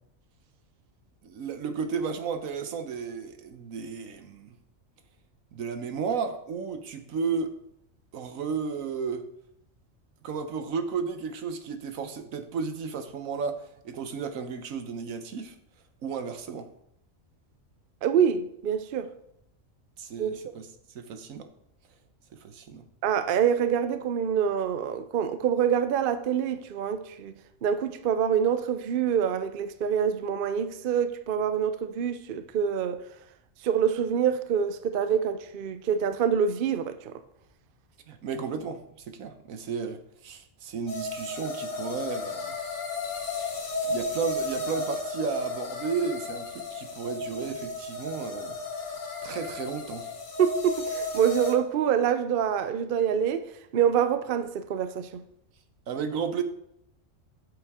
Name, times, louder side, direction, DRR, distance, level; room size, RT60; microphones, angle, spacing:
voice 1, 1.2-4.6 5.5-7.6 8.1-9.3 10.2-15.5 16.0-16.7 20.0-20.7 20.9-21.5 22.4-22.8 38.1-42.6 43.8-48.6 48.8-50.1 55.9-56.4, right 5 dB, 80° right, 1.3 m, -33 dB
voice 2, 18.0-19.1 20.2-20.4 23.0-27.3 27.6-33.0 33.6-37.2 50.4-53.5 53.7-55.2, right 8 dB, 55° right, 0.6 m, -26 dB
sound 1, 40.9-51.5, left 2 dB, 65° left, 1.5 m, -34 dB
8.1 x 7.3 x 3.6 m
omnidirectional pair, 1.4 m